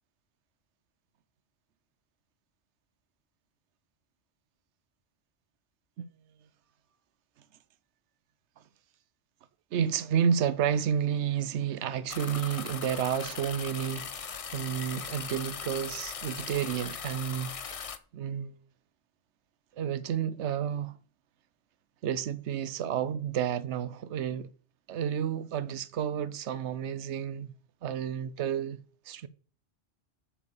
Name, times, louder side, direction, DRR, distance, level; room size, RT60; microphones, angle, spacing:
voice 1, 9.7-18.6 19.8-21.0 22.0-24.5 24.9-27.5 27.8-29.3, right 8 dB, 80° right, 1.0 m, -31 dB
sound 1, 12.1-18.0, left 6 dB, 40° left, 0.5 m, -39 dB
7.8 x 6.2 x 6.9 m
omnidirectional pair, 1.2 m